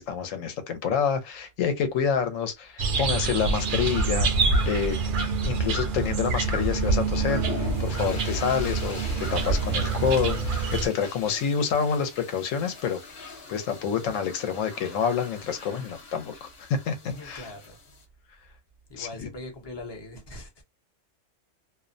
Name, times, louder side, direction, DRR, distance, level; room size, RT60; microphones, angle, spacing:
voice 1, 0.0-4.3 4.7-5.0 5.4-13.0 13.5-17.5 19.0-19.3, left 7 dB, 90° left, 1.0 m, -28 dB
sound 1, 2.8-10.9, right 4 dB, 60° right, 0.5 m, -26 dB
sound 2, 7.0-18.0, left 4 dB, 55° left, 1.0 m, -42 dB
voice 2, 16.9-17.8 18.9-20.6, left 2 dB, 30° left, 0.5 m, -41 dB
2.5 x 2.1 x 2.5 m
omnidirectional pair, 1.3 m